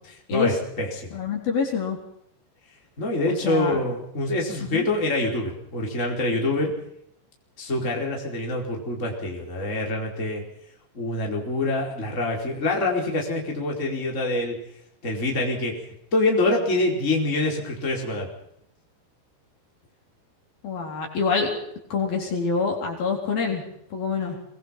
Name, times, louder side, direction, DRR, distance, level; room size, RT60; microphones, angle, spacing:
voice 1, 0.3-1.2 3.0-6.8 7.6-10.4 10.9-14.6 15.0-15.8 16.1-18.3, left 2 dB, 15° left, 0 dB, 4.6 m, -25 dB
voice 2, 1.1-2.0 3.4-3.8 4.6-4.9 20.6-21.5 21.9-23.6 23.9-24.4, left 5 dB, 55° left, 1 dB, 5.6 m, -26 dB
24.5 x 21.0 x 5.8 m, 0.73 s
omnidirectional pair, 5.3 m